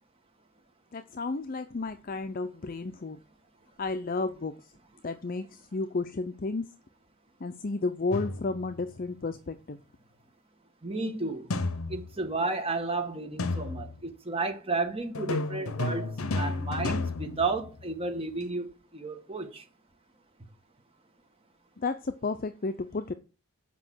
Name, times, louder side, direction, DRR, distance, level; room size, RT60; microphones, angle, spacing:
voice 1, 0.9-3.2 3.8-4.5 5.0-6.7 7.4-9.8 21.8-23.1, left 3 dB, 40° left, 0.5 m, -32 dB
sound 1, 8.1-8.8 11.5-12.4 13.4-14.1 15.1-18.1, left 2 dB, 70° left, 0.8 m, -32 dB
voice 2, 10.8-11.5 11.9-19.6, right 3 dB, 25° right, 1.5 m, -32 dB
8.3 x 5.3 x 7.6 m
head